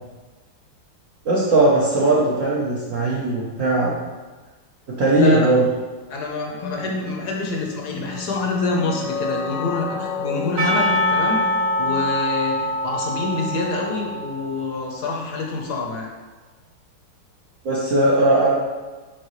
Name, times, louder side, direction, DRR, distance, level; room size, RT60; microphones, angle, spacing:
voice 1, 1.2-4.0 4.9-5.6 17.6-18.5, right 2 dB, 50° right, -6 dB, 1.1 m, -18 dB
voice 2, 5.1-5.5 6.1-11.4 11.8-16.1, left 3 dB, 60° left, 0 dB, 1.3 m, -27 dB
sound 1, 6.6-12.0, left 4 dB, 80° left, 1.9 m, -30 dB
Percussion / Church bell, 10.6-15.0, left 1 dB, 70° right, 2.8 m, -24 dB
6.4 x 5.3 x 3.2 m, 1.3 s
omnidirectional pair, 2.3 m